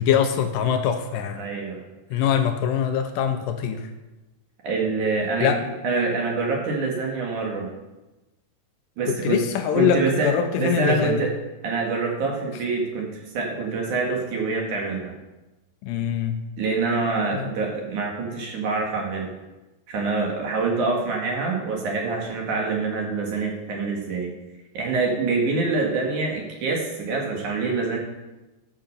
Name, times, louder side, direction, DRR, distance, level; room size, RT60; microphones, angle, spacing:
voice 1, 0.0-1.4 2.1-3.9 5.4-5.6 9.1-11.2 15.8-16.4 17.3-17.5, left 8 dB, 80° left, 7 dB, 2.0 m, -23 dB
voice 2, 1.4-1.8 4.6-7.7 9.0-9.4 9.7-10.3 10.6-11.3 11.6-15.1 16.6-19.3 19.9-24.3 24.7-28.0, right 4 dB, 55° right, 0 dB, 3.0 m, -25 dB
13.0 x 6.6 x 6.8 m, 1.1 s
omnidirectional pair, 4.6 m